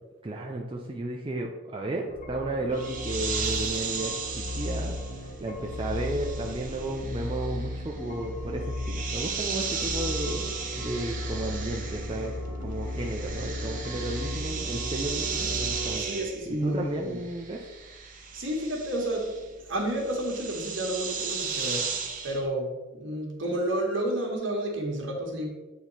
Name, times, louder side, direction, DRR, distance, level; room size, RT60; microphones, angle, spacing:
voice 1, 0.2-4.1 4.6-4.9 5.4-12.3 12.6-16.0 16.5-17.6, right 2 dB, 25° right, 0 dB, 0.4 m, -33 dB
sound 1, 2.1-16.0, left 2 dB, 40° left, 0.6 m, -35 dB
sound 2, 2.7-12.5 12.7-22.4, right 6 dB, 40° right, 0.8 m, -36 dB
sound 3, 9.7-16.3, right 6 dB, 90° right, 0.8 m, -43 dB
voice 2, 16.0-17.2 18.3-21.9 22.2-22.7 22.9-25.5, right 1 dB, 65° right, -1 dB, 1.5 m, -30 dB
8.4 x 3.0 x 4.1 m, 1.1 s
head